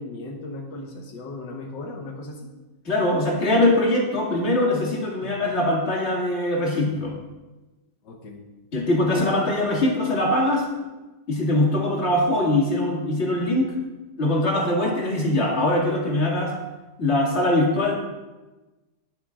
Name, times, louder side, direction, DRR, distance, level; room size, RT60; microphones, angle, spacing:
voice 1, 0.0-2.5 5.2-5.3 8.0-8.4, left 2 dB, 80° left, 2 dB, 1.7 m, -37 dB
voice 2, 2.9-7.2 8.7-10.7 11.3-13.8 14.2-16.6 17.0-18.0, left 1 dB, 40° left, -2 dB, 2.3 m, -22 dB
19.5 x 8.2 x 2.4 m, 1.1 s
omnidirectional pair, 1.9 m